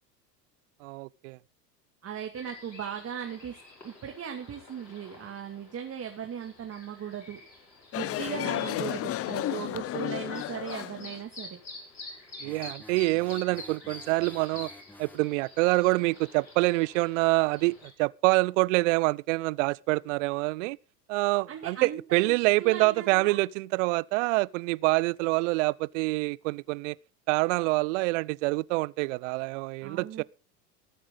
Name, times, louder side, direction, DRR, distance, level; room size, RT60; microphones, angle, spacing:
voice 1, 0.8-1.4 12.4-14.7 15.0-20.8 21.1-27.0 27.3-30.2, right 24 dB, 50° right, 0.6 m, -26 dB
voice 2, 2.0-7.4 7.9-11.6 21.5-23.4 29.8-30.2, right 8 dB, 30° right, 2.4 m, -38 dB
sound 1, 2.3-17.9, left 2 dB, 90° left, 4.9 m, -48 dB
sound 2, 7.9-11.2, left 14 dB, 30° left, 0.7 m, -32 dB
sound 3, 12.4-15.3, left 2 dB, 5° left, 1.4 m, -51 dB
20.5 x 8.7 x 3.9 m
hypercardioid pair, 85°, 49 cm